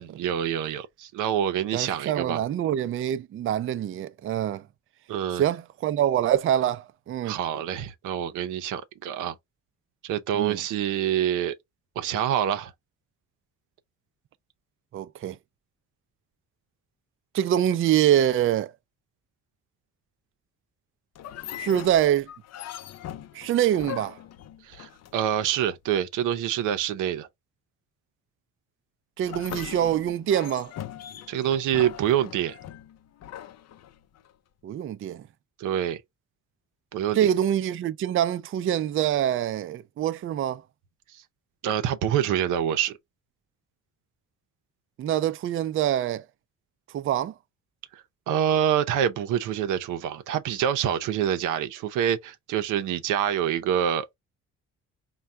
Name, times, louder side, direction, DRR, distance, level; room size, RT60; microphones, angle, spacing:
voice 1, 0.0-2.4 5.1-5.4 7.2-9.3 10.0-11.6 12.0-12.7 24.6-27.3 31.3-32.6 35.6-36.0 36.9-37.3 41.1-41.2 41.6-43.0 48.3-54.2, right 10 dB, 90° right, 0.7 m, -26 dB
voice 2, 1.7-4.6 5.3-7.4 10.3-10.6 14.9-15.4 17.3-18.7 21.6-22.3 23.3-24.2 29.2-30.7 34.6-35.2 37.1-40.6 45.0-46.2 46.9-47.3, right 11 dB, 45° right, 0.4 m, -25 dB
sound 1, 21.2-25.5 29.2-34.3, left 11 dB, 60° left, 0.5 m, -40 dB
4.2 x 2.3 x 3.5 m
cardioid pair, 90°, 30 cm